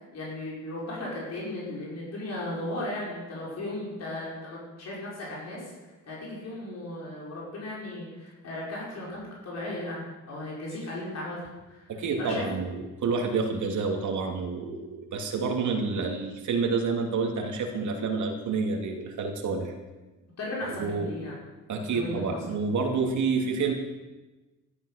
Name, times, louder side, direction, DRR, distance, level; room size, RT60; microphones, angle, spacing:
voice 1, 0.0-5.7 6.0-11.4 11.7-11.8 12.2-12.4 20.4-21.3 21.9-22.4, left 1 dB, 50° left, -5 dB, 5.6 m, -36 dB
voice 2, 11.9-19.7 20.8-21.1 21.7-23.7, right 4 dB, 65° right, 2 dB, 2.7 m, -28 dB
13.0 x 12.5 x 6.6 m, 1.2 s
cardioid pair, 150°, 32 cm